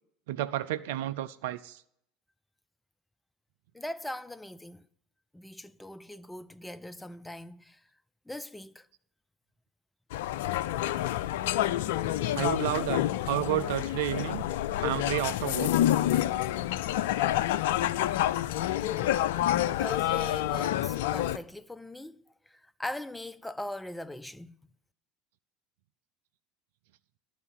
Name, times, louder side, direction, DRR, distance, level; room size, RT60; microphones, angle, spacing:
voice 1, 0.3-1.8 12.3-14.4 14.8-15.9, right 13 dB, 70° right, 0.3 m, -31 dB
voice 2, 3.7-4.9 5.3-7.8 8.3-8.9 19.8-24.5, left 1 dB, 5° left, 0.4 m, -40 dB
sound 1, 10.1-21.4, left 13 dB, 70° left, 0.3 m, -28 dB
12.0 x 4.2 x 7.5 m
hypercardioid pair, 75°, 0 cm